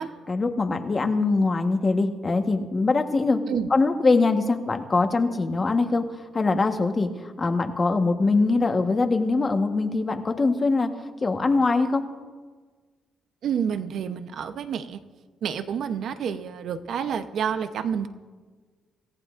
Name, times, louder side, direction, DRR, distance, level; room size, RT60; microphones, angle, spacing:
voice 1, 0.3-3.4 3.7-6.0 6.3-10.9 11.2-12.0, left 3 dB, 30° left, 5 dB, 1.3 m, -22 dB
voice 2, 13.4-15.0 15.4-18.1, right 7 dB, 70° right, 10 dB, 0.9 m, -29 dB
26.0 x 15.0 x 2.6 m, 1.4 s
cardioid pair, 90°, 0 cm